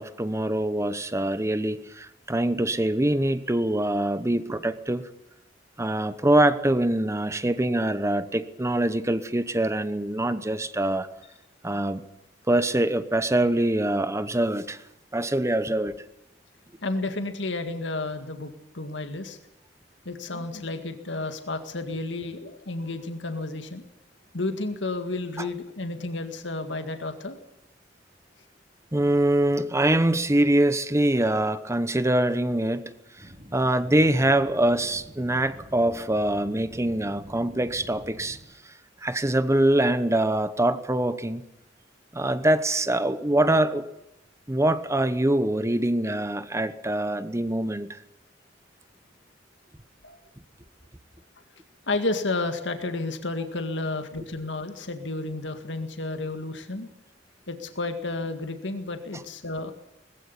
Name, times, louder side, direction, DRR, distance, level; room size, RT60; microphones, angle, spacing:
voice 1, 0.0-5.1 5.8-11.1 11.6-12.0 12.5-14.8 15.1-15.9 25.4-25.5 28.9-38.4 39.0-41.4 42.1-43.9 44.5-48.0, right 1 dB, 15° right, 13 dB, 1.0 m, -24 dB
voice 2, 16.8-19.4 20.1-23.9 24.3-27.4 50.0-50.2 51.9-56.9 57.5-59.7, left 2 dB, 75° left, 7 dB, 2.0 m, -31 dB
sound 1, 33.2-38.4, equal, 30° right, 4.0 m, -46 dB
20.5 x 15.5 x 9.8 m, 0.85 s
head